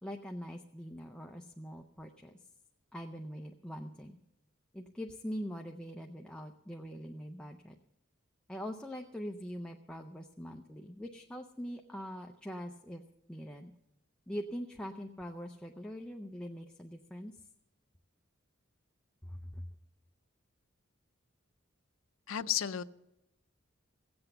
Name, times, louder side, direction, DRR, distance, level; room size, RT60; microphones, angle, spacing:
voice 1, 0.0-2.3 2.9-4.2 4.7-7.8 8.5-13.0 13.3-13.7 14.3-17.4 19.2-19.7, equal, 5° left, 2 dB, 0.5 m, -43 dB
voice 2, 22.3-22.8, left 10 dB, 75° left, 13 dB, 0.5 m, -32 dB
16.5 x 7.9 x 6.8 m, 0.88 s
head